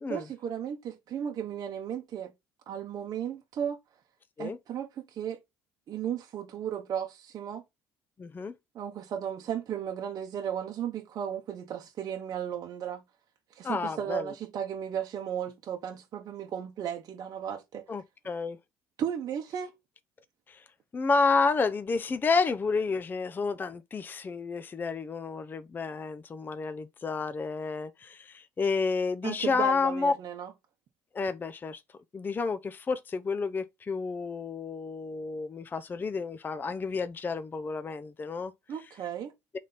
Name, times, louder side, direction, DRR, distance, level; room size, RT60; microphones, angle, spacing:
voice 1, 0.1-2.3 2.7-3.8 4.4-5.4 5.9-7.6 8.7-13.0 13.5-17.8 19.0-19.7 29.2-30.5 38.7-39.3, right 9 dB, 50° right, 0.8 m, -35 dB
voice 2, 8.2-8.5 13.6-14.3 17.9-18.6 20.5-20.6 20.9-30.1 31.1-31.8 32.1-38.5, left 4 dB, 25° left, 0.4 m, -30 dB
3.7 x 3.3 x 4.0 m
supercardioid pair, 75°, 8 cm